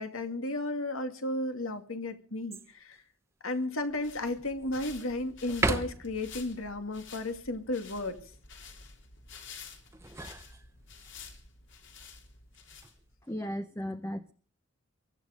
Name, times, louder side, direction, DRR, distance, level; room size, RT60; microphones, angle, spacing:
voice 1, 0.0-3.0 3.4-8.2, left 2 dB, 80° left, 7 dB, 2.3 m, -34 dB
sound 1, 2.5-3.0 3.5-3.6 4.2-5.0 5.5-6.3 9.7-11.1 12.5-13.0, right 2 dB, 15° right, 1.0 m, -35 dB
sound 2, 3.8-13.3, left 5 dB, 60° left, 3.4 m, -50 dB
voice 2, 13.3-14.3, equal, 10° left, 9 dB, 0.7 m, -35 dB
23.5 x 12.0 x 5.1 m, 0.42 s
head